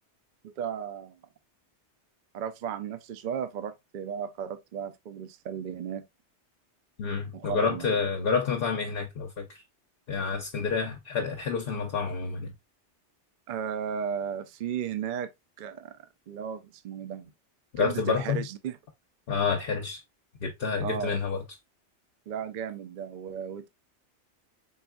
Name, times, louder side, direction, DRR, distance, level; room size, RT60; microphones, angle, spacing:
voice 1, 0.4-1.2 2.3-6.1 7.3-8.0 13.5-15.3 15.6-17.3 17.8-18.8 20.8-21.2 22.3-23.7, right 8 dB, 55° right, 0.6 m, -35 dB
voice 2, 7.0-9.6 10.1-12.5 17.7-18.5 19.3-20.0 20.4-21.4, left 5 dB, 60° left, 0.8 m, -29 dB
4.1 x 3.4 x 2.2 m
omnidirectional pair, 1.2 m